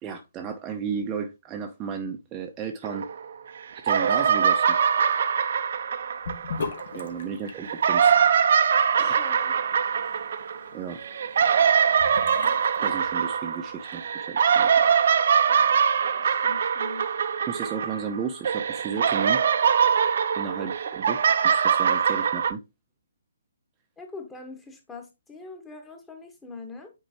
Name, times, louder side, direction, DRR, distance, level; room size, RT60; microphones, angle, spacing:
voice 1, 0.0-3.1 3.7-4.8 6.9-8.1 9.0-9.2 10.7-11.0 12.8-14.7 17.5-19.4 20.3-21.2 21.4-22.6, right 6 dB, 20° right, 0.7 m, -33 dB
sound 1, 2.8-3.5 3.8-7.0 7.6-18.2 18.4-22.5, right 7 dB, 50° right, 0.7 m, -23 dB
Sink (filling or washing) / Bathtub (filling or washing), 6.2-13.6, left 5 dB, 55° left, 1.4 m, -40 dB
voice 2, 9.1-9.5 15.5-15.8 16.1-17.1 20.5-20.7 24.0-26.9, left 3 dB, 10° left, 1.5 m, -43 dB
8.6 x 4.6 x 3.0 m
figure-of-eight pair, 135°, 0 cm